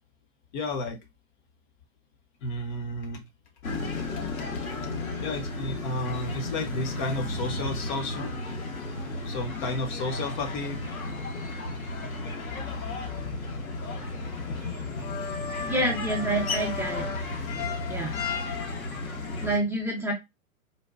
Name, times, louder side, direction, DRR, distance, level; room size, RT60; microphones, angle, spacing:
voice 1, 0.5-1.0 2.4-3.2 3.7-3.8 4.2-4.5 4.8-4.9 5.2-8.3 9.3-10.8, left 2 dB, 35° left, 0.7 m, -32 dB
sound 1, 3.6-19.6, left 3 dB, 80° left, 1.0 m, -33 dB
voice 2, 15.6-17.1 17.9-18.2 19.4-20.1, right 1 dB, 5° right, 0.6 m, -28 dB
3.9 x 2.2 x 2.3 m
figure-of-eight pair, 110°, 42 cm